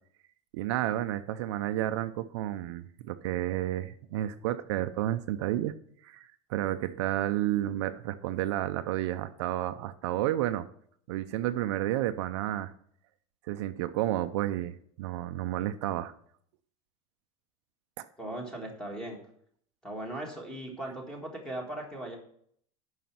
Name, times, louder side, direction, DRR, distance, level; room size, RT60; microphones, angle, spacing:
voice 1, 0.5-5.7 6.0-10.7 11.1-12.7 13.5-16.1 18.0-18.1, right 13 dB, 75° right, 10 dB, 0.6 m, -31 dB
voice 2, 18.2-19.2 19.8-22.2, right 1 dB, 5° left, 1 dB, 1.7 m, -38 dB
9.4 x 5.8 x 5.9 m, 0.64 s
cardioid pair, 175°, 15 cm